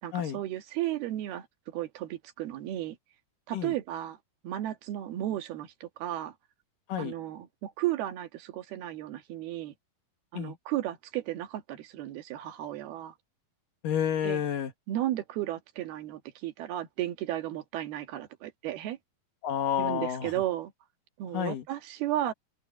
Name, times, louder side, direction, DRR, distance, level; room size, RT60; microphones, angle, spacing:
voice 1, 0.0-3.0 3.5-4.2 4.4-6.3 7.0-9.7 10.3-13.1 14.2-14.4 14.9-19.0 19.8-20.7 21.2-22.3, right 13 dB, 85° right, 3.5 m, -34 dB
voice 2, 13.8-14.7 19.4-20.3 21.3-21.6, left 9 dB, 65° left, 3.2 m, -30 dB
omnidirectional pair, 4.3 m